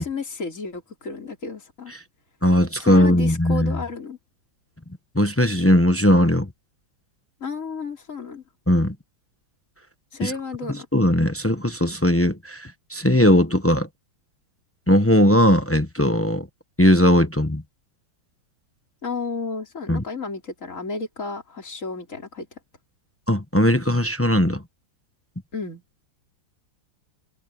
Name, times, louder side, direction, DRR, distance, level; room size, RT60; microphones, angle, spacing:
voice 1, 0.0-1.9 2.8-4.2 7.4-8.4 10.1-10.9 19.0-22.5 25.5-25.8, left 4 dB, 40° left, 4.4 m, -32 dB
voice 2, 2.4-3.8 5.1-6.5 8.7-8.9 10.2-10.3 10.9-13.9 14.9-16.5 16.8-17.6 19.9-20.0 23.3-24.6, left 1 dB, 15° left, 0.5 m, -18 dB
omnidirectional pair, 2.1 m